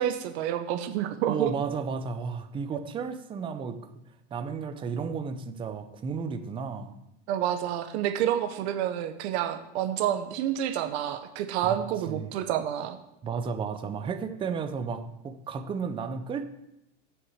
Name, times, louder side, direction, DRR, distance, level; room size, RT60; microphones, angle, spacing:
voice 1, 0.0-1.5 7.3-13.0, right 10 dB, 60° right, 8 dB, 1.0 m, -29 dB
voice 2, 1.3-3.8 4.3-6.9 11.6-11.8 12.1-12.3 13.2-16.5, right 5 dB, 15° right, 8 dB, 0.6 m, -33 dB
7.9 x 6.3 x 8.0 m, 0.86 s
supercardioid pair, 155°, 36 cm